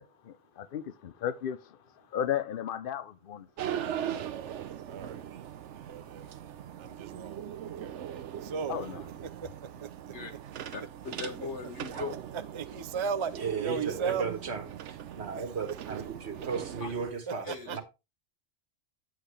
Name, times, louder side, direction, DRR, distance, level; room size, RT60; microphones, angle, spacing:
voice 1, 0.0-3.8 8.7-9.0 16.8-16.9, left 10 dB, 55° left, 0.8 m, -35 dB
sound 1, 3.6-17.1, right 10 dB, 85° right, 1.0 m, -40 dB
voice 2, 4.8-5.2 5.9-6.3 6.8-7.9 8.4-8.8 9.2-9.9 12.5-14.3 15.3-15.8 17.3-17.8, right 6 dB, 35° right, 0.5 m, -36 dB
voice 3, 10.7-12.2 17.4-17.8, left 4 dB, 75° left, 1.8 m, -39 dB
voice 4, 13.4-17.8, right 5 dB, 65° right, 1.7 m, -35 dB
8.9 x 7.8 x 3.2 m
omnidirectional pair, 1.2 m